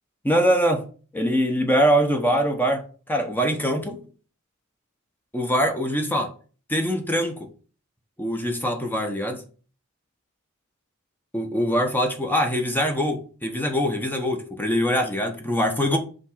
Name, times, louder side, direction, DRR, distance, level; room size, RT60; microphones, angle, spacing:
voice 1, 0.2-0.8 1.1-4.0 5.3-6.3 6.7-7.5 8.2-9.4 11.3-16.0, equal, 10° left, 1.0 m, -23 dB
5.3 x 3.6 x 5.6 m
head